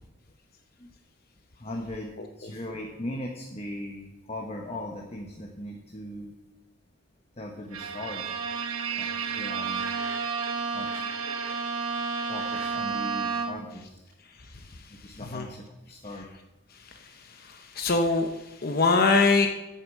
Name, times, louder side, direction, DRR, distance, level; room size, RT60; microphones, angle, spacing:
voice 1, 1.6-2.1 2.4-6.3 7.4-8.2 9.0-9.1 9.3-9.8 10.7-11.0 12.3-14.0 14.9-16.3, left 1 dB, 30° left, 0 dB, 1.2 m, -38 dB
Bowed string instrument, 7.7-13.8, right 5 dB, 80° right, 1.2 m, -31 dB
voice 2, 17.5-18.3 18.6-19.5, left 3 dB, 45° left, 5 dB, 0.8 m, -22 dB
9.0 x 8.1 x 7.3 m, 1.0 s
head